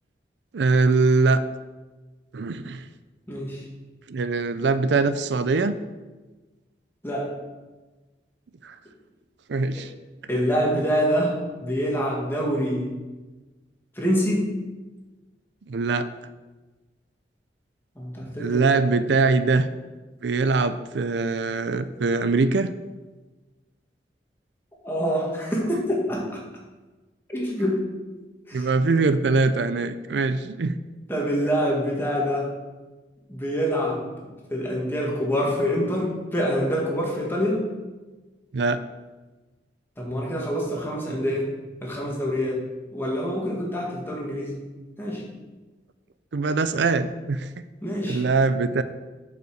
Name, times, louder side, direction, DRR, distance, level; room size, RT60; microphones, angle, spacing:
voice 1, 0.5-1.4 2.3-2.8 4.1-5.8 8.6-8.8 9.5-9.9 10.7-10.8 15.7-16.1 18.4-19.7 20.2-22.7 28.5-30.8 38.5-38.8 46.3-47.5 48.1-48.8, right 3 dB, 80° right, 12 dB, 0.5 m, -22 dB
voice 2, 3.3-3.6 7.0-7.4 10.3-12.9 14.0-14.5 18.0-18.6 24.8-26.3 27.3-27.9 28.5-28.7 31.1-32.5 33.3-34.0 34.5-37.6 40.0-41.5 41.8-44.6 45.0-45.2 47.8-48.2, equal, 15° left, -3 dB, 2.0 m, -26 dB
8.0 x 5.7 x 6.4 m, 1.2 s
head